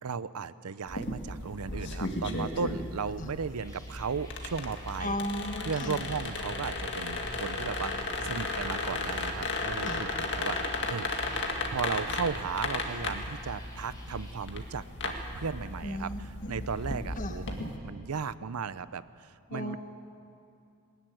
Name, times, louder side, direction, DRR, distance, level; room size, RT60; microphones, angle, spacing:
voice 1, 0.0-5.2 5.6-11.1 11.7-16.1 16.5-19.8, right 5 dB, 80° right, 16 dB, 0.6 m, -36 dB
sound 1, 0.9-17.8, left 2 dB, 55° left, 1.9 m, -35 dB
sound 2, 3.3-14.4, left 1 dB, 15° left, 4.2 m, -53 dB
voice 2, 5.0-6.1 9.8-10.0 15.8-16.6 17.2-17.4 19.5-19.8, left 1 dB, 35° left, 5 dB, 1.5 m, -36 dB
21.0 x 14.0 x 9.3 m, 2.5 s
head